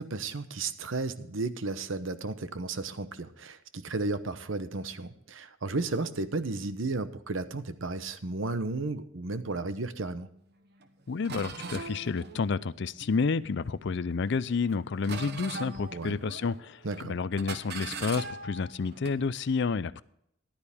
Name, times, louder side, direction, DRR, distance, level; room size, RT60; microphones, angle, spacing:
voice 1, 0.0-10.3 15.9-16.2 16.8-17.2, right 3 dB, 70° right, 0.9 m, -33 dB
sound 1, 10.8-10.9 11.2-13.7 14.2-14.7 15.0-16.7 16.9-17.1 17.4-19.2, right 3 dB, 55° right, 1.1 m, -40 dB
voice 2, 11.1-20.0, left 4 dB, 60° left, 0.5 m, -30 dB
14.5 x 11.5 x 3.5 m
head